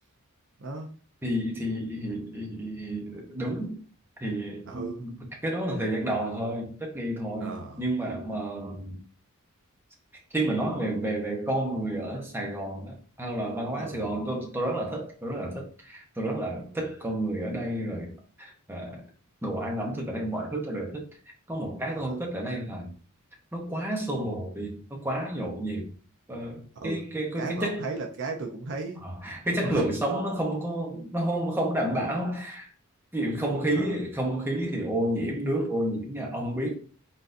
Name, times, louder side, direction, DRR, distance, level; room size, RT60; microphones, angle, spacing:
voice 1, 1.2-3.8 4.2-5.1 5.4-9.0 10.3-18.1 18.4-19.0 19.4-21.1 21.5-22.9 23.5-25.9 26.3-27.9 29.0-32.7 33.1-36.7, right 1 dB, 10° right, 1.0 m, -30 dB
voice 2, 4.7-5.1 7.4-7.8 13.7-14.1 16.6-16.8 21.9-22.1 26.7-27.0 27.4-29.0 29.5-29.9 33.8-34.0, right 3 dB, 55° right, 0.7 m, -36 dB
4.0 x 3.8 x 2.6 m
head